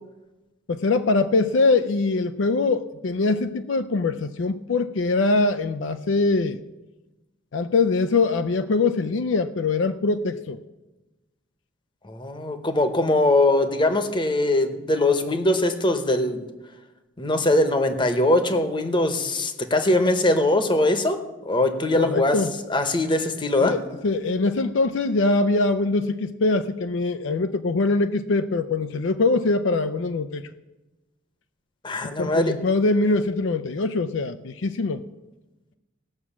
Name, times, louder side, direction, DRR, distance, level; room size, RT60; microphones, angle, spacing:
voice 1, 0.7-6.6 7.5-10.6 22.0-22.5 23.6-30.4 32.0-35.0, left 3 dB, 65° left, 10 dB, 0.5 m, -23 dB
voice 2, 12.0-16.4 17.2-22.4 22.7-23.8 31.8-32.5, left 1 dB, 25° left, 8 dB, 1.0 m, -21 dB
18.0 x 6.1 x 7.2 m, 1.1 s
head